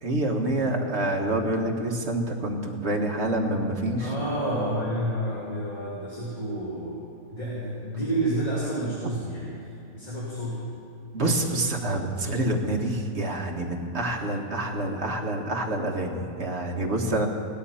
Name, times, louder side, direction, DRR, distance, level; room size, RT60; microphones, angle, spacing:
voice 1, 0.0-4.1 11.1-17.3, right 1 dB, 50° right, 1 dB, 1.7 m, -27 dB
voice 2, 4.0-7.0 7.3-9.6 9.9-10.6, right 1 dB, 25° left, -7 dB, 2.7 m, -29 dB
17.0 x 12.0 x 5.7 m, 2.7 s
omnidirectional pair, 1.5 m